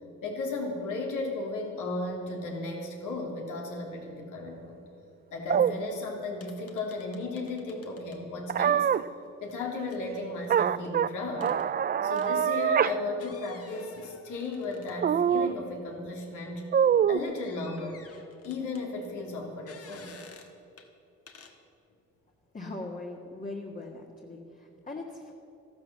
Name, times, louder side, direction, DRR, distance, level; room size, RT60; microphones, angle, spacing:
voice 1, 0.2-4.8 5.3-8.9 9.4-11.5 12.0-16.7 17.1-18.1 18.4-20.1, left 3 dB, 85° left, 0 dB, 3.2 m, -35 dB
sound 1, 5.5-5.7 8.5-9.0 10.5-11.1 11.4-12.9 13.3-13.4 15.0-15.6 16.7-17.2, right 8 dB, 30° right, 0.4 m, -24 dB
sound 2, 5.7-5.8 6.0-6.1 6.4-8.2 9.4-10.8 11.4-11.6 12.2-12.3 13.1-15.3 15.7-15.8 17.3-18.8 19.7-20.5 20.8-20.9 21.3-21.6, left 5 dB, 50° left, 1.8 m, -53 dB
voice 2, 22.5-25.3, left 2 dB, 25° left, -1 dB, 1.7 m, -40 dB
13.5 x 12.5 x 7.5 m, 2.7 s
cardioid pair, 90°, 30 cm